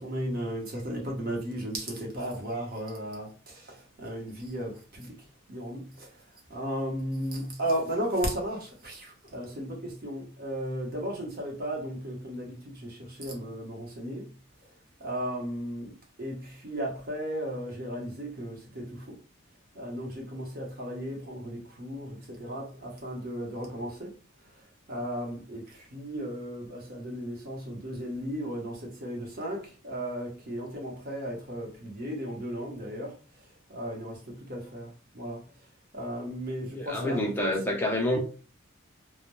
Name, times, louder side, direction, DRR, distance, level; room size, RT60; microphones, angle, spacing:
voice 1, 0.0-5.1 5.5-6.2 6.5-14.3 15.0-19.2 19.7-24.1 24.9-33.2 33.7-35.4 35.9-37.7 38.1-38.2, equal, 45° right, 0.8 m, -35 dB
voice 2, 36.7-38.2, left 1 dB, 10° left, 0.4 m, -28 dB
2.2 x 2.1 x 2.9 m
head